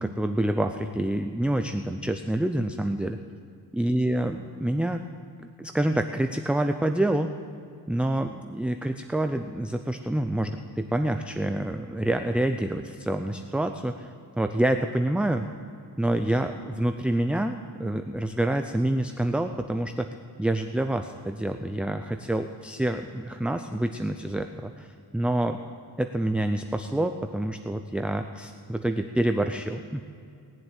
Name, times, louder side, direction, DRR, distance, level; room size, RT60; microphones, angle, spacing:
voice 1, 0.0-3.2 3.7-5.0 5.4-7.3 7.9-14.1 14.4-15.5 16.0-20.1 20.4-24.9 25.1-25.6 26.0-30.0, right 1 dB, 5° right, 6 dB, 0.5 m, -27 dB
19.5 x 7.6 x 9.2 m, 2.4 s
wide cardioid pair, 115°, 42 cm